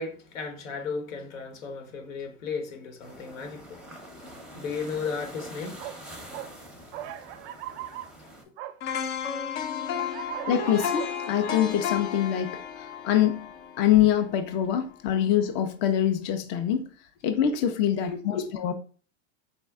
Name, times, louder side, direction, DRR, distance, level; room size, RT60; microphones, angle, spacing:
voice 1, 0.0-3.8 4.2-6.2 18.0-18.5, left 5 dB, 85° left, 1.3 m, -35 dB
sound 1, 3.0-8.4, equal, ahead, 0.7 m, -45 dB
sound 2, 5.8-6.0 6.3-6.5 6.9-8.1 8.6-8.7 10.0-11.6, right 13 dB, 50° right, 0.4 m, -38 dB
sound 3, 8.8-14.8 15.2-15.3, left 7 dB, 55° left, 0.7 m, -33 dB
voice 2, 10.5-13.4 13.8-16.9 17.2-18.7, left 10 dB, 30° left, 0.4 m, -24 dB
4.2 x 2.1 x 3.5 m
supercardioid pair, 125°, 38 cm